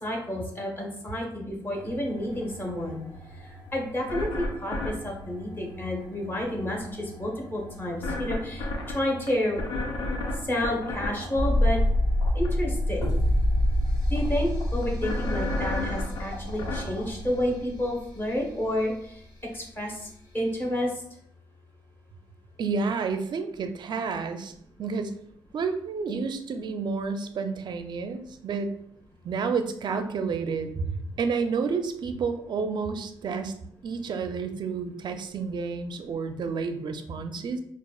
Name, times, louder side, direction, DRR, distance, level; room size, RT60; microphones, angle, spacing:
voice 1, 0.0-3.0 3.4-9.6 10.4-11.8 12.3-13.0 14.1-19.2 19.5-20.1 20.3-20.9, left 1 dB, 25° left, 0 dB, 1.1 m, -30 dB
sound 1, 1.7-17.6, left 1 dB, 85° left, 0.7 m, -36 dB
sound 2, 11.4-18.2 18.5-18.6, left 1 dB, 50° left, 1.4 m, -26 dB
voice 2, 22.6-24.5 24.8-25.2 25.5-28.7 29.2-30.9 31.2-33.5 33.8-37.6, right 5 dB, 55° right, 8 dB, 0.4 m, -30 dB
5.4 x 2.4 x 2.3 m, 0.71 s
cardioid pair, 85°, 9 cm